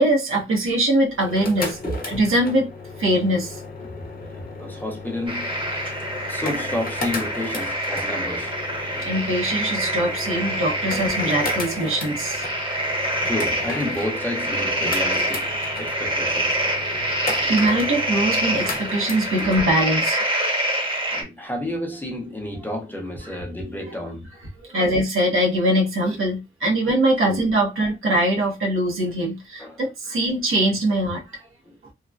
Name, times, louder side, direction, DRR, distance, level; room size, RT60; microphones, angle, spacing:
voice 1, 0.0-1.8 2.1-2.7 3.0-3.6 9.0-12.4 16.9-20.2 24.6-31.2, right 1 dB, 75° right, 1.1 m, -22 dB
sound 1, 1.1-19.6, left 3 dB, 45° left, 0.7 m, -35 dB
voice 2, 1.8-2.2 4.2-8.5 13.2-15.5 15.8-16.6 19.4-19.5 21.1-24.3 27.2-27.4 29.6-29.8 31.7-31.8, left 1 dB, 10° left, 0.6 m, -31 dB
sound 2, 5.3-21.2, right 1 dB, 25° right, 1.0 m, -26 dB
3.0 x 2.1 x 2.4 m
wide cardioid pair, 140°, 21 cm